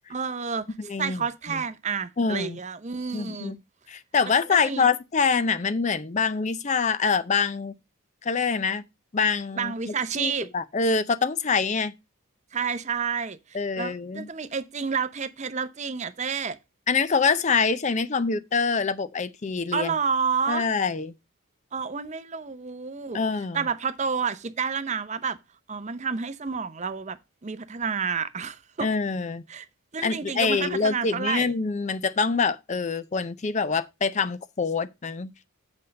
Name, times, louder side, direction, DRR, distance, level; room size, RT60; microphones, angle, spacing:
voice 1, 0.1-3.6 4.5-4.9 9.6-10.5 12.5-16.6 19.7-20.7 21.7-23.2 23.5-25.4 25.7-28.9 29.5-29.7 29.9-31.5, right 6 dB, 30° right, 0.6 m, -30 dB
voice 2, 0.8-1.2 1.5-1.6 2.2-2.6 3.1-3.6 3.9-7.7 8.2-8.8 9.1-9.7 10.2-11.9 13.5-14.3 16.9-19.9 20.5-21.1 23.1-23.7 28.8-29.4 30.0-35.3, left 5 dB, 30° left, 0.5 m, -25 dB
8.0 x 5.2 x 5.1 m
head